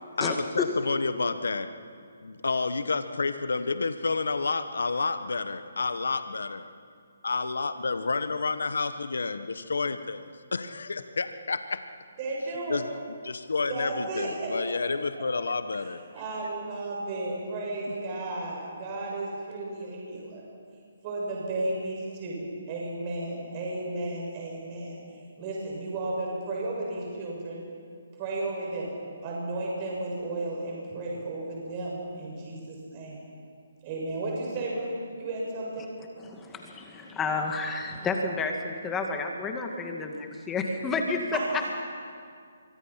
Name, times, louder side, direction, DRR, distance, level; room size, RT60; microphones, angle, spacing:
voice 1, 0.2-1.7 2.2-6.7 7.2-11.8 12.7-12.9 13.2-16.0, left 4 dB, 80° left, 10 dB, 1.3 m, -30 dB
voice 2, 12.2-12.8 13.7-14.8 15.8-20.4 21.0-25.0 25.4-27.6 28.2-29.0 29.2-33.2 33.8-35.9 41.3-41.7, right 2 dB, 30° right, -3 dB, 6.8 m, -33 dB
voice 3, 36.2-41.4, left 4 dB, 10° left, 2 dB, 2.3 m, -31 dB
26.0 x 23.5 x 5.8 m, 2.2 s
hypercardioid pair, 155°, 0 cm